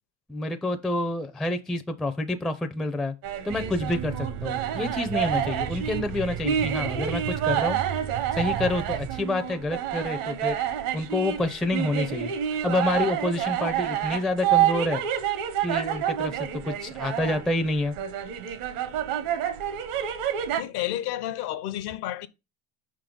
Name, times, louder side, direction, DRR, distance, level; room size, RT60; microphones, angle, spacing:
voice 1, 0.3-3.1 3.4-7.8 8.3-10.6 10.9-12.3 12.6-15.0 15.6-17.9, left 2 dB, ahead, 0.4 m, -28 dB
sound 1, 3.2-20.6, right 10 dB, 80° right, 1.1 m, -28 dB
sound 2, 3.5-9.2, right 10 dB, 55° right, 0.6 m, -35 dB
voice 2, 20.6-22.3, left 13 dB, 60° left, 0.7 m, -31 dB
5.4 x 3.8 x 5.1 m
supercardioid pair, 100°, 44 cm